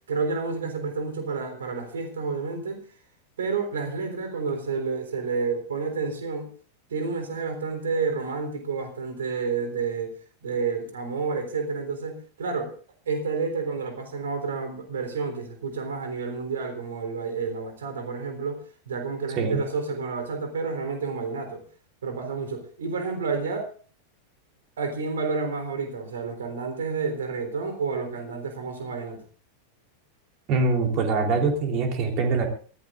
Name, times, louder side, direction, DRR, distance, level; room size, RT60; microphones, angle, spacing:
voice 1, 0.1-2.8 3.4-6.5 6.9-10.1 10.4-12.7 13.1-18.6 18.9-21.6 22.0-23.7 24.8-29.2, right 4 dB, 65° right, 7 dB, 3.8 m, -30 dB
voice 2, 30.5-32.5, right 4 dB, 40° right, 4 dB, 3.7 m, -23 dB
23.5 x 16.5 x 2.5 m, 0.39 s
figure-of-eight pair, 90°, 0 cm